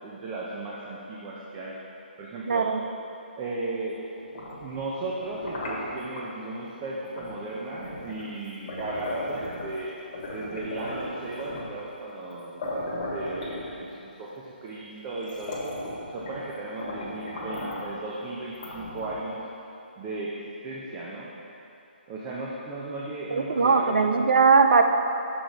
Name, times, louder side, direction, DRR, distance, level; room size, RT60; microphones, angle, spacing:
voice 1, 0.0-1.8 2.2-2.7 3.4-4.0 4.3-9.9 10.3-12.8 13.1-15.7 16.1-19.4 20.0-21.3 22.1-24.1, right 2 dB, 25° right, -5 dB, 0.8 m, -36 dB
voice 2, 2.5-2.8 23.3-24.8, right 5 dB, 65° right, 6 dB, 0.6 m, -20 dB
sound 1, 4.2-6.3 7.2-7.4 7.7-9.8 10.1-11.8 12.3-12.4 12.6-14.1 14.8-14.9 15.2-16.5 16.8-17.9 18.5-19.3, left 1 dB, 40° left, 1.4 m, -36 dB
6.3 x 6.3 x 4.8 m, 2.9 s
figure-of-eight pair, 140°, 6 cm